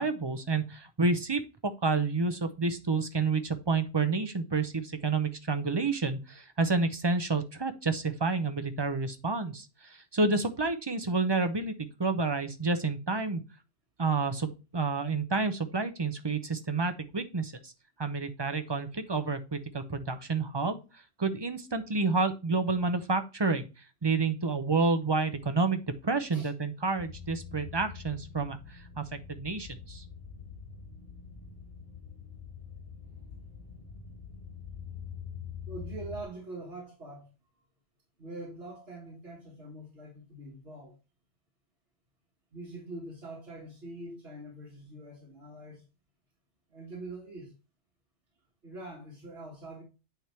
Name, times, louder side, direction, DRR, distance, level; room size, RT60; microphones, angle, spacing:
voice 1, 0.0-13.4 14.0-17.7 18.0-20.8 21.2-23.7 24.0-30.0, right 3 dB, 25° right, 0.7 m, -29 dB
sound 1, 27.0-36.2, left 7 dB, 40° left, 0.9 m, -45 dB
voice 2, 35.7-37.3 38.2-41.0 42.5-45.8 46.7-47.5 48.6-49.8, right 2 dB, 60° right, 1.9 m, -44 dB
9.0 x 3.6 x 4.3 m
omnidirectional pair, 1.2 m